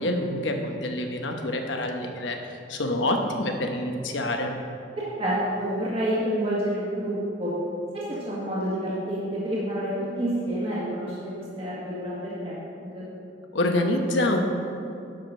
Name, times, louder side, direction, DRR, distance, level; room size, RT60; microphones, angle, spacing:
voice 1, 0.0-2.4 2.7-4.5 13.5-14.4, left 1 dB, 75° left, 3 dB, 1.0 m, -26 dB
voice 2, 5.0-7.5 7.9-12.5 12.8-13.1, right 1 dB, 30° right, -7 dB, 1.7 m, -29 dB
10.5 x 5.1 x 6.4 m, 2.5 s
head